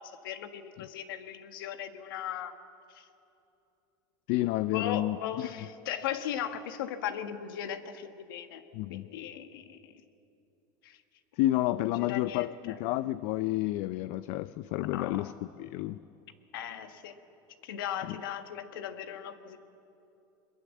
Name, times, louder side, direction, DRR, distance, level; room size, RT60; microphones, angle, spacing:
voice 1, 0.2-2.5 2.9-3.0 4.7-8.6 8.9-9.9 10.8-11.0 12.0-12.8 14.9-15.2 16.5-17.1 17.6-19.6, left 9 dB, 85° left, 8 dB, 1.5 m, -37 dB
voice 2, 4.3-5.5 8.7-9.1 11.4-15.3 15.6-16.0 18.1-18.2, left 16 dB, 65° left, 15 dB, 0.5 m, -30 dB
22.0 x 22.0 x 7.3 m, 2.9 s
supercardioid pair, 105°, 11 cm